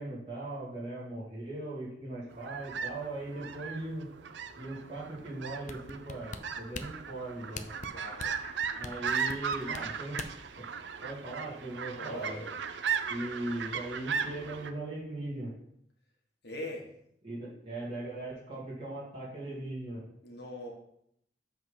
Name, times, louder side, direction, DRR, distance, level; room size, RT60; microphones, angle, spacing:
voice 1, 0.0-4.1 4.6-7.7 8.7-10.2 10.8-12.4 13.0-15.5 17.2-20.0, right 2 dB, 30° right, -6 dB, 2.7 m, -39 dB
sound 1, 2.3-14.7, right 6 dB, 85° right, 0.6 m, -37 dB
sound 2, 5.7-10.5 11.0-11.1, left 4 dB, 40° left, 0.4 m, -42 dB
voice 2, 7.9-8.3 9.6-9.7 11.9-12.5 16.4-16.9 20.2-20.7, left 1 dB, 70° left, -1 dB, 1.5 m, -41 dB
7.6 x 3.7 x 5.8 m, 0.72 s
head